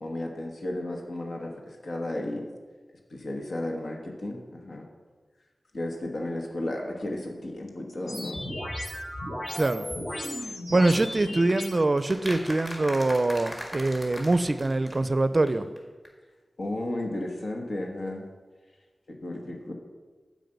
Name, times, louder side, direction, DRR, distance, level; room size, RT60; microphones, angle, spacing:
voice 1, 0.0-2.4 3.1-4.9 5.7-8.4 10.9-11.1 11.4-11.5 16.6-18.3 19.1-19.7, left 1 dB, 70° left, 1 dB, 1.3 m, -34 dB
sound 1, 8.1-11.7, left 1 dB, 50° left, 1.9 m, -35 dB
voice 2, 9.5-9.9 10.7-15.7, right 2 dB, 35° right, 12 dB, 0.5 m, -24 dB
sound 2, 11.5-15.2 15.5-15.6 15.8-15.9 16.0-16.1, equal, 20° left, 1.7 m, -40 dB
9.3 x 5.0 x 8.0 m, 1.4 s
wide cardioid pair, 100°, 0 cm